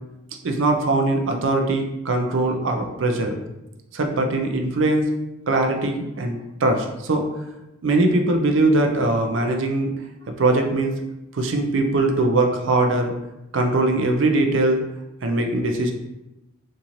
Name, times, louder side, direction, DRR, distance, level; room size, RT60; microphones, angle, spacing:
voice 1, 0.4-3.4 3.9-5.1 5.5-7.2 7.8-9.9 10.3-10.9 11.3-13.1 13.5-14.8 15.2-15.9, right 2 dB, 65° right, 4 dB, 0.5 m, -21 dB
3.7 x 2.7 x 3.0 m, 0.95 s
head